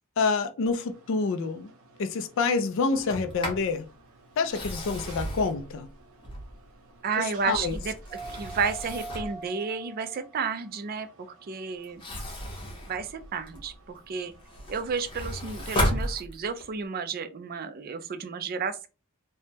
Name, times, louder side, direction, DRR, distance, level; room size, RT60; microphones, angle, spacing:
voice 1, 0.2-1.7 2.0-3.8 4.4-5.9 7.2-7.8, left 4 dB, 60° left, 0.4 m, -27 dB
sound 1, 0.7-15.6, right 3 dB, 80° right, 0.7 m, -49 dB
Sliding door, 2.9-3.7 4.4-6.7 7.3-9.4 11.8-13.8 14.2-16.7, equal, 25° left, 0.9 m, -34 dB
voice 2, 7.0-7.9 8.3-12.0 12.9-14.3 14.7-18.9, right 5 dB, 45° right, 0.4 m, -32 dB
3.3 x 2.1 x 2.8 m
head